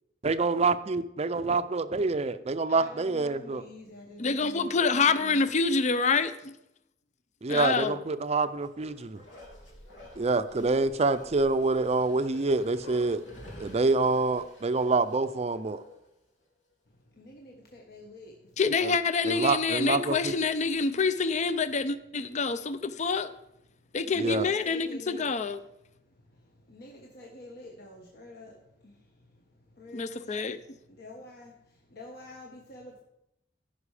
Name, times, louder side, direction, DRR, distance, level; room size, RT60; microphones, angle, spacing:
voice 1, 0.2-3.6 7.4-9.2 10.2-13.2 13.6-15.8 19.2-20.3 24.2-24.5, right 3 dB, 35° right, 12 dB, 0.5 m, -26 dB
voice 2, 2.7-5.5 17.2-18.8 24.1-25.3 26.7-28.6 29.8-30.6 31.0-31.5 31.9-33.0, left 2 dB, 55° left, 0 dB, 1.3 m, -47 dB
voice 3, 4.2-6.6 7.5-8.0 18.6-23.3 23.9-25.6 29.9-30.6, left 4 dB, 40° left, 13 dB, 0.5 m, -27 dB
Bark, 8.6-16.1 16.5-16.6, left 1 dB, 85° left, 2.8 m, -50 dB
15.0 x 5.8 x 4.9 m, 0.84 s
head